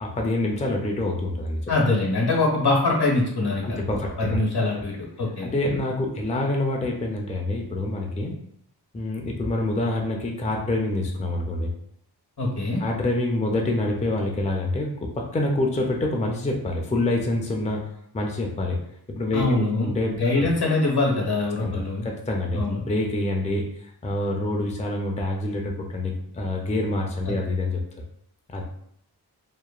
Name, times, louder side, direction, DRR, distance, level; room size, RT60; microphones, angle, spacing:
voice 1, 0.0-1.6 3.6-4.4 5.4-8.4 8.9-11.7 12.8-17.8 18.1-18.8 19.1-20.5 21.6-23.6 24.0-27.8 28.5-28.6, left 2 dB, 20° left, 0 dB, 0.4 m, -26 dB
voice 2, 1.7-3.6 4.2-5.5 12.4-12.8 19.3-22.0 22.5-22.8 27.3-27.4, left 2 dB, 70° left, -1 dB, 0.9 m, -23 dB
2.9 x 2.1 x 2.3 m, 0.69 s
wide cardioid pair, 50°, 40 cm